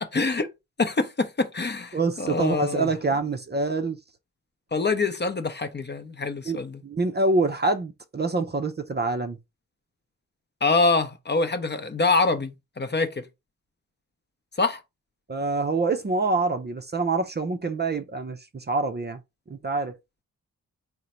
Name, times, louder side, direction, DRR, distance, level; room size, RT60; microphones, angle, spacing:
voice 1, 0.0-0.5 0.8-2.9 4.7-6.8 10.6-13.2 14.6-14.8, left 3 dB, 30° left, 0.7 m, -25 dB
voice 2, 1.9-4.0 6.5-9.4 15.3-19.2 19.5-19.9, right 3 dB, 30° right, 0.6 m, -26 dB
3.8 x 2.2 x 4.3 m
supercardioid pair, 50°, 36 cm